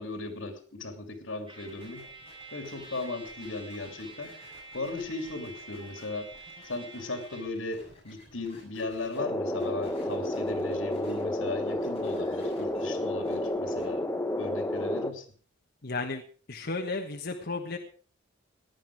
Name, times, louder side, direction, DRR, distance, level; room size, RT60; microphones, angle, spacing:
voice 1, 0.0-2.0 2.5-4.3 4.7-6.3 6.6-14.1 14.4-15.2, left 2 dB, 85° left, 7 dB, 2.8 m, -37 dB
Trumpet, 1.5-7.6, right 3 dB, 25° right, 6.6 m, -48 dB
sound 1, 1.7-9.2 9.6-11.2 11.5-13.8, left 2 dB, 30° left, 7.5 m, -55 dB
sound 2, 9.2-15.1, left 1 dB, 15° left, 1.1 m, -31 dB
voice 2, 15.8-16.2 16.5-17.8, left 3 dB, 55° left, 3 dB, 1.4 m, -33 dB
17.5 x 11.0 x 4.8 m, 0.42 s
head